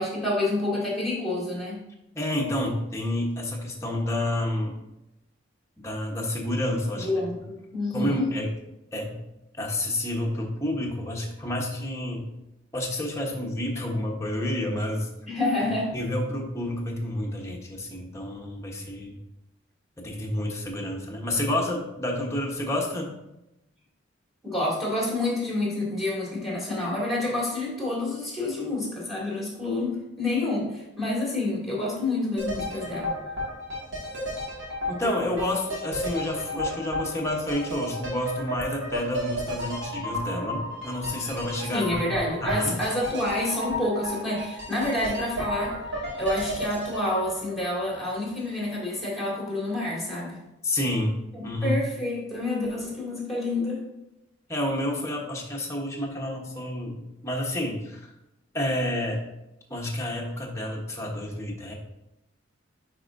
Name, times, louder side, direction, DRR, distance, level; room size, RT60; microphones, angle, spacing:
voice 1, 0.0-1.8 7.0-8.3 15.3-16.0 24.4-33.1 41.7-45.8 46.1-50.4 51.3-53.8, left 2 dB, ahead, -5 dB, 2.3 m, -28 dB
voice 2, 2.1-4.8 5.8-7.1 7.9-8.5 8.9-9.2 9.6-12.3 12.7-15.1 15.9-19.2 20.0-23.1 34.9-42.8 50.6-51.8 54.5-58.1 58.5-59.2 59.7-61.7, left 1 dB, 15° left, -1 dB, 1.0 m, -29 dB
sound 1, 32.4-48.3 48.6-48.7, equal, 65° right, 2.1 m, -33 dB
9.8 x 4.3 x 2.6 m, 0.91 s
head